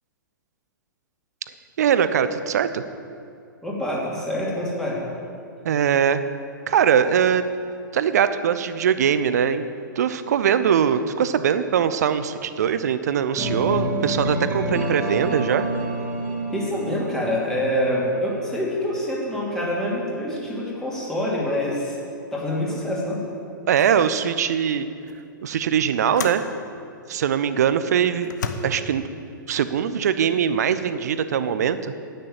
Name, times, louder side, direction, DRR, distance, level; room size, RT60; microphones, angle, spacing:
voice 1, 1.8-2.8 5.6-6.2 6.7-7.4 7.9-9.6 10.0-15.6 23.7-24.9 25.4-26.4 27.1-28.3 28.6-29.0 29.5-31.9, right 8 dB, 50° right, 12 dB, 0.7 m, -21 dB
voice 2, 3.6-5.0 16.5-22.0 22.3-23.2, left 1 dB, 5° left, -5 dB, 2.8 m, -26 dB
sound 1, 13.4-19.3, right 1 dB, 15° right, 2.3 m, -28 dB
sound 2, 23.2-23.4 23.8-24.1 25.1-25.2 26.2-26.5 27.3-27.4 28.2-28.5, left 7 dB, 60° left, 1.0 m, -32 dB
10.5 x 10.0 x 7.3 m, 2.5 s
figure-of-eight pair, 110°, 11 cm